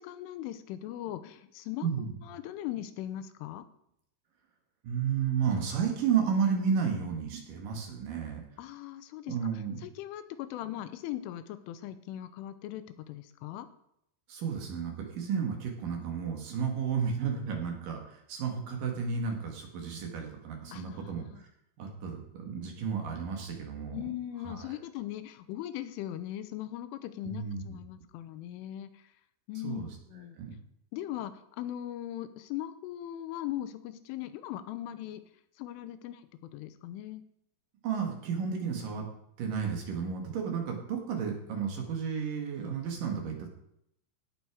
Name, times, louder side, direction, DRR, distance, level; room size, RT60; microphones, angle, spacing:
voice 1, 0.0-3.6 8.6-13.7 20.7-21.4 23.9-29.0 29.5-30.4 30.9-35.2 35.6-36.2 36.5-37.2, left 12 dB, 85° left, 12 dB, 3.1 m, -39 dB
voice 2, 1.8-2.1 4.8-8.4 9.3-9.8 14.3-21.2 21.8-24.1 24.4-24.7 27.2-27.6 29.6-29.9 30.4-30.5 37.8-39.1 39.4-43.5, right 6 dB, 60° right, 2 dB, 2.6 m, -32 dB
17.0 x 6.8 x 4.8 m, 0.75 s
omnidirectional pair, 5.8 m